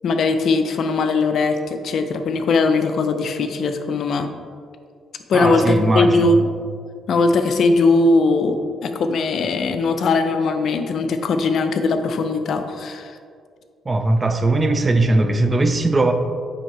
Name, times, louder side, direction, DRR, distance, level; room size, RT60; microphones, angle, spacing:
voice 1, 0.0-4.3 5.3-6.4 7.1-13.2, left 3 dB, 65° left, 7 dB, 0.5 m, -20 dB
voice 2, 5.3-6.3 13.9-16.1, right 2 dB, 25° right, 7 dB, 0.5 m, -19 dB
9.0 x 3.4 x 3.1 m, 2.1 s
cardioid pair, 90°, 0 cm